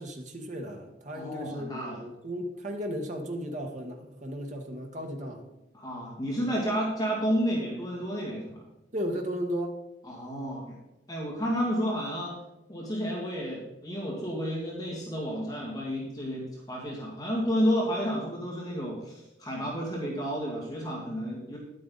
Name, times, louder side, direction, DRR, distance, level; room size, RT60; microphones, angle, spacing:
voice 1, 0.0-5.4 8.9-9.8, equal, 45° right, 3 dB, 1.3 m, -35 dB
voice 2, 1.1-2.0 5.7-8.7 10.0-10.8 11.1-12.4 12.7-21.6, equal, 20° left, -3 dB, 2.2 m, -31 dB
10.5 x 8.9 x 4.0 m, 0.95 s
head